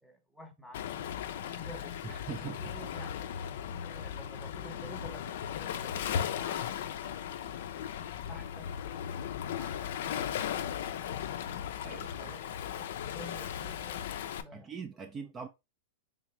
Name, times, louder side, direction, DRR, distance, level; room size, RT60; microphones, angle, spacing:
voice 1, 0.0-3.3 3.8-7.1 8.3-10.9 12.1-12.5 12.9-14.7 15.1-15.4, equal, ahead, 0.8 m, -52 dB
Waves surf, 0.7-14.4, left 9 dB, 70° left, 0.4 m, -37 dB
voice 2, 2.0-2.6 11.8-12.3 14.5-15.5, right 6 dB, 20° right, 0.4 m, -42 dB
3.7 x 3.4 x 3.1 m
hypercardioid pair, 125°, 0 cm